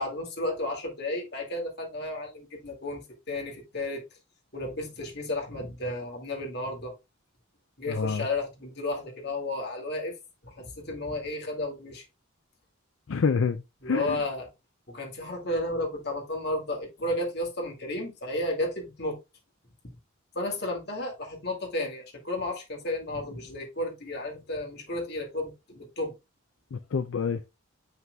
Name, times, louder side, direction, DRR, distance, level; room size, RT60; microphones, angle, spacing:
voice 1, 0.0-3.0 3.3-4.0 4.5-6.9 7.8-10.1 10.4-12.1 13.8-14.5 14.9-19.2 19.8-20.0 20.3-26.1, left 1 dB, 50° left, 2.3 m, -33 dB
voice 2, 7.9-8.3 13.1-14.2 26.7-27.4, left 5 dB, 70° left, 0.4 m, -28 dB
7.5 x 5.7 x 2.3 m
head